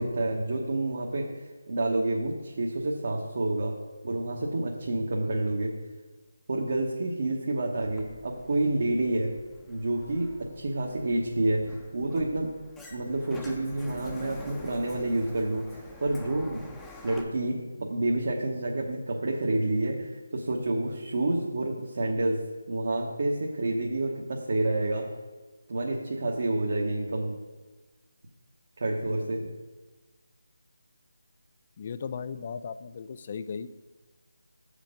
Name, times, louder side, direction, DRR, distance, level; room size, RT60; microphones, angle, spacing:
voice 1, 0.0-3.7 4.0-5.7 6.5-9.3 9.7-12.5 12.9-16.6 17.0-22.4 22.7-25.1 25.7-27.4 28.8-29.5, right 2 dB, 55° right, -2 dB, 1.1 m, -29 dB
Sliding door, 7.8-17.2, left 2 dB, 5° left, 0.7 m, -48 dB
voice 2, 31.8-33.7, left 6 dB, 35° left, 13 dB, 0.4 m, -36 dB
7.9 x 5.1 x 5.2 m, 1.3 s
figure-of-eight pair, 160°, 0 cm